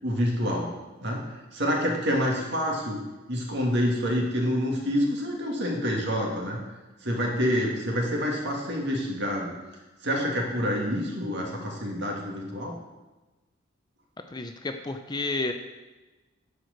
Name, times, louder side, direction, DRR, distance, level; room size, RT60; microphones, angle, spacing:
voice 1, 0.0-0.7 1.0-1.2 1.5-3.0 3.3-6.6 7.0-9.5 10.0-12.7, equal, 60° right, -1 dB, 2.0 m, -27 dB
voice 2, 14.3-15.5, left 3 dB, 20° left, 6 dB, 0.5 m, -31 dB
10.0 x 4.8 x 6.5 m, 1.2 s
head